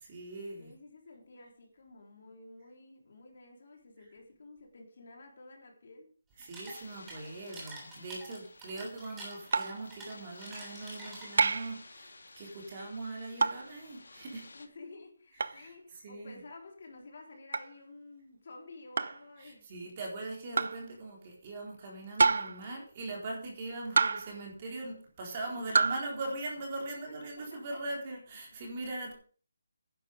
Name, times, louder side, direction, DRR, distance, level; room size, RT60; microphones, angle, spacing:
voice 1, 0.0-0.7 6.4-14.5 15.4-15.7 16.0-16.4 19.4-29.1, right 2 dB, 25° right, -1 dB, 3.9 m, -41 dB
voice 2, 0.6-6.1 14.5-19.9 25.5-25.8 27.1-27.6 27.9-28.0, left 3 dB, 50° left, 2 dB, 3.8 m, -52 dB
sound 1, 6.3-11.6, right 2 dB, 10° right, 3.3 m, -48 dB
sound 2, 6.6-14.7, left 3 dB, 85° left, 2.1 m, -53 dB
sound 3, 9.5-9.8 11.4-11.8 13.4-13.7 15.4-15.6 17.5-17.7 19.0-19.2 20.6-20.8 22.2-22.7 24.0-24.4 25.7-26.0, right 4 dB, 55° right, 0.7 m, -27 dB
11.5 x 10.5 x 5.2 m, 0.42 s
hypercardioid pair, 175°, 0 cm